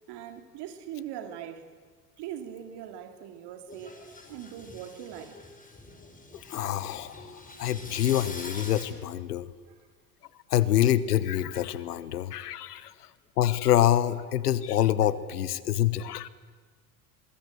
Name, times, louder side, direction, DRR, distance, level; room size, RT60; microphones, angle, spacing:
voice 1, 0.1-1.6 2.2-5.4 9.7-9.9, right 10 dB, 60° right, 2.8 m, -41 dB
sound 1, 3.7-8.9, left 2 dB, 15° left, 5.1 m, -45 dB
voice 2, 6.5-7.2 7.6-9.5 10.5-12.9 13.4-16.3, left 12 dB, 85° left, 1.1 m, -26 dB
23.5 x 22.5 x 8.0 m
hypercardioid pair, 70°, 46 cm